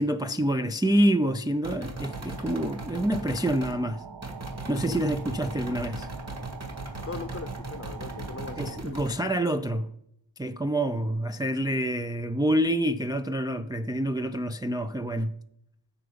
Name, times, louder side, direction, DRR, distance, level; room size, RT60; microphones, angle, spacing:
voice 1, 0.0-4.0 4.7-6.1 8.6-9.9 10.4-15.4, right 1 dB, 10° right, 0.4 m, -27 dB
sound 1, 1.6-3.8 4.2-9.2, right 2 dB, 35° right, 2.2 m, -38 dB
sound 2, 2.0-8.8, right 6 dB, 60° right, 0.8 m, -44 dB
voice 2, 7.1-9.1, left 4 dB, 30° left, 0.7 m, -40 dB
9.8 x 7.0 x 5.1 m
wide cardioid pair, 65°, 45 cm